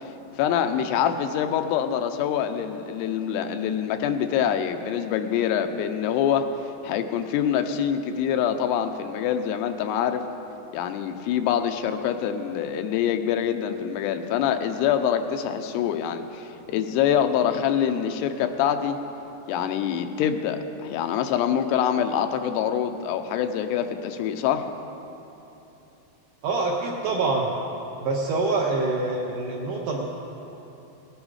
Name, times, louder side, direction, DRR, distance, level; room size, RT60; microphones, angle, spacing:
voice 1, 0.4-6.5 6.8-10.2 10.7-19.0 19.5-24.7, left 9 dB, 90° left, 7 dB, 2.8 m, -25 dB
voice 2, 26.4-27.5 28.0-30.1, right 3 dB, 75° right, -1 dB, 1.9 m, -25 dB
18.5 x 11.5 x 4.9 m, 3.0 s
omnidirectional pair, 4.7 m